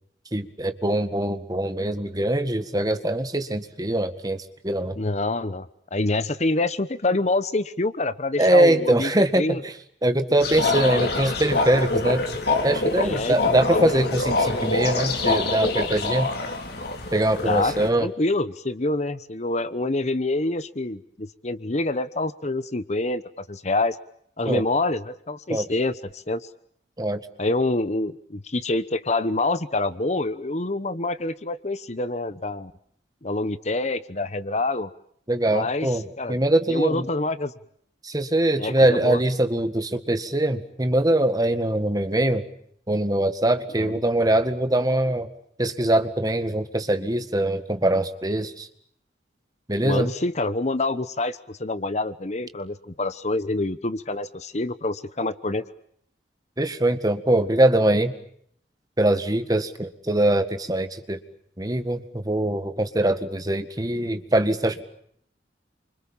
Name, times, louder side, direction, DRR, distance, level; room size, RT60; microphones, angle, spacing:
voice 1, 0.3-5.0 8.4-9.7 10.0-12.3 12.6-16.3 17.1-18.1 24.5-24.6 25.5-25.7 27.0-27.2 35.3-37.1 38.0-42.4 42.9-45.3 45.6-48.7 49.7-50.1 56.6-58.1 59.0-61.2 61.6-64.8, right 1 dB, 20° right, 9 dB, 1.8 m, -22 dB
voice 2, 5.0-5.7 5.9-9.1 9.4-9.6 13.0-13.9 17.4-24.0 24.4-26.5 27.4-32.7 33.2-34.9 35.5-35.9 36.2-36.4 36.7-37.5 38.6-39.2 43.8-44.0 49.8-55.6, left 2 dB, 40° left, 14 dB, 1.1 m, -26 dB
sound 1, 10.4-17.9, left 3 dB, 60° left, 4.8 m, -25 dB
29.0 x 26.0 x 7.4 m, 0.66 s
head